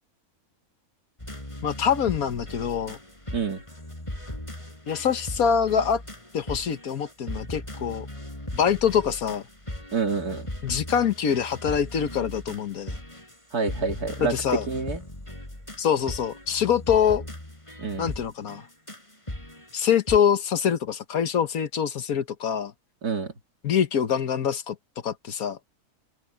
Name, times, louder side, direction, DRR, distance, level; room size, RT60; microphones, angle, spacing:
sound 1, 1.2-20.2, left 1 dB, 20° left, 4.4 m, -38 dB
voice 1, 1.6-3.0 4.9-6.0 6.3-8.1 8.5-9.4 10.6-13.0 14.2-14.7 15.8-17.2 18.0-18.6 19.7-22.7 23.6-24.8 25.0-25.6, left 8 dB, 70° left, 1.5 m, -24 dB
voice 2, 9.9-10.5 13.5-14.4 14.7-15.0 17.8-18.1 23.0-23.3, right 4 dB, 85° right, 3.3 m, -27 dB
omnidirectional pair, 1.6 m